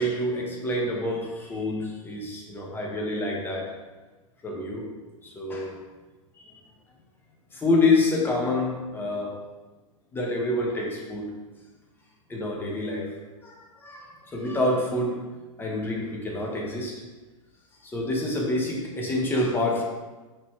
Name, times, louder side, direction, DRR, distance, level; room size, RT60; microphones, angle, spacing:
voice 1, 0.0-3.8 4.4-4.9 5.2-5.7 6.5-6.6 7.5-9.4 10.1-11.4 12.3-13.2 13.4-15.2 15.6-17.0 17.8-19.8, left 2 dB, 10° left, -2 dB, 1.3 m, -27 dB
5.7 x 5.1 x 3.3 m, 1.2 s
figure-of-eight pair, 95°, 18 cm